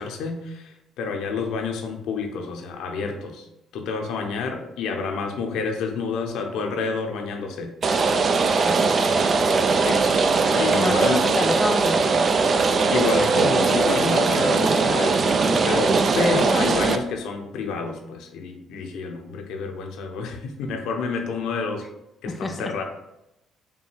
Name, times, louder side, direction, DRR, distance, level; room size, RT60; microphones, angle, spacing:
voice 1, 0.0-3.5 3.7-7.8 9.8-10.1 10.5-11.3 12.9-21.8 22.2-22.8, left 4 dB, 70° left, 3 dB, 0.6 m, -29 dB
Rain, 7.8-17.0, right 4 dB, 45° right, 0.4 m, -20 dB
voice 2, 8.7-9.1 10.7-12.3 22.3-22.8, left 2 dB, 25° left, 5 dB, 0.3 m, -29 dB
5.3 x 2.3 x 3.2 m, 0.86 s
hypercardioid pair, 50°, 0 cm